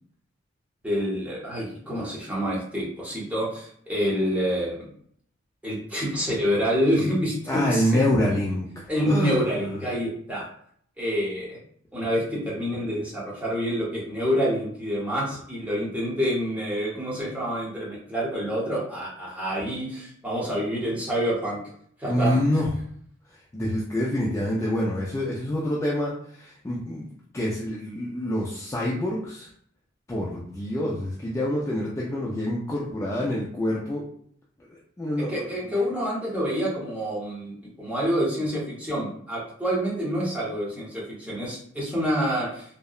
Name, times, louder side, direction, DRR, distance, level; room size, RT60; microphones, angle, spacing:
voice 1, 0.8-4.9 5.6-7.9 8.9-10.5 11.0-11.6 11.9-21.6 22.0-22.4 35.3-42.6, equal, 5° right, -6 dB, 0.8 m, -27 dB
voice 2, 7.5-9.8 22.1-22.7 23.3-29.5 30.1-34.0 34.7-35.6, left 1 dB, 15° left, -5 dB, 0.3 m, -27 dB
2.7 x 2.1 x 2.3 m, 0.63 s
head